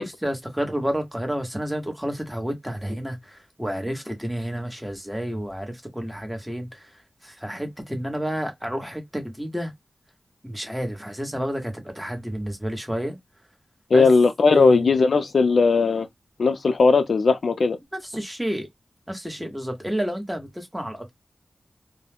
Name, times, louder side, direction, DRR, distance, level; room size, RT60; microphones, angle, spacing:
voice 1, 0.2-6.9 7.2-9.7 10.4-13.2 13.9-14.1 14.5-14.9 18.1-18.7 19.1-21.1, equal, 5° right, 0.9 m, -30 dB
voice 2, 13.9-16.1 16.4-17.8, left 4 dB, 85° left, 0.4 m, -18 dB
2.2 x 2.0 x 3.3 m
wide cardioid pair, 75°, 0 cm